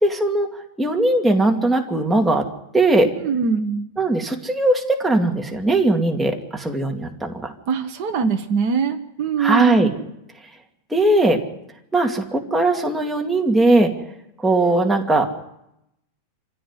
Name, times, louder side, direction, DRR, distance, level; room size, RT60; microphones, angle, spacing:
voice 1, 0.0-0.5 0.8-2.5 2.7-3.1 4.0-7.5 9.4-9.9 10.9-11.4 11.9-13.9 14.4-15.3, right 2 dB, ahead, 2 dB, 1.8 m, -19 dB
voice 2, 3.2-3.8 7.7-9.9, right 5 dB, 55° right, 5 dB, 1.1 m, -22 dB
26.0 x 16.0 x 9.8 m, 0.83 s
omnidirectional pair, 3.4 m